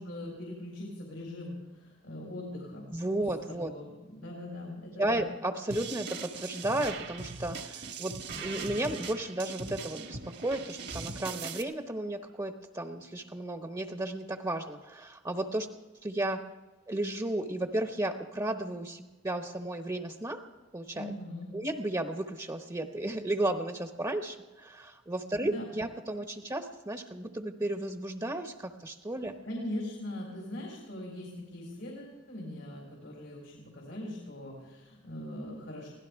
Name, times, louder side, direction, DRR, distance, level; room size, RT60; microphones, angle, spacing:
voice 1, 0.0-2.9 3.2-5.2 20.9-21.6 25.3-25.7 29.4-35.9, left 1 dB, 85° left, -2 dB, 4.2 m, -41 dB
voice 2, 2.9-3.7 5.0-15.7 16.0-16.4 16.9-20.4 20.7-21.1 21.5-29.3, right 1 dB, 20° right, 5 dB, 1.0 m, -34 dB
sound 1, 5.7-11.6, right 4 dB, 60° right, 1.6 m, -40 dB
24.0 x 17.0 x 3.6 m, 1.2 s
head